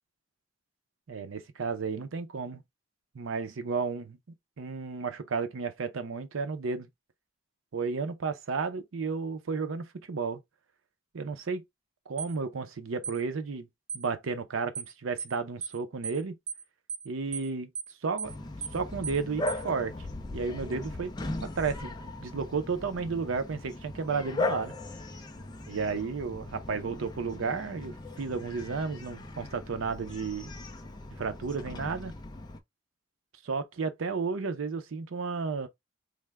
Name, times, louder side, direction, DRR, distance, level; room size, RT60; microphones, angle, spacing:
voice 1, 1.1-2.6 3.1-4.2 4.6-6.9 7.7-10.4 11.1-11.6 12.1-13.7 13.9-16.3 17.0-17.7 18.0-18.3 18.7-19.9 20.3-21.1 21.4-21.9 22.2-24.7 25.7-30.5 31.2-32.1 33.4-35.7, right 4 dB, 80° right, 0.5 m, -33 dB
sound 1, 12.2-12.3 13.0-13.2 13.9-14.1 14.7-14.9 15.2-15.3 15.6-15.8 16.0-16.2 16.5-16.6 16.9-17.1 17.3-17.5 17.7-17.9 18.2-18.3 18.6-18.8 19.0-19.2 19.5-19.6, right 7 dB, 40° right, 0.7 m, -36 dB
Bark, 18.2-32.6, left 2 dB, 20° left, 0.3 m, -38 dB
3.3 x 2.1 x 3.4 m
head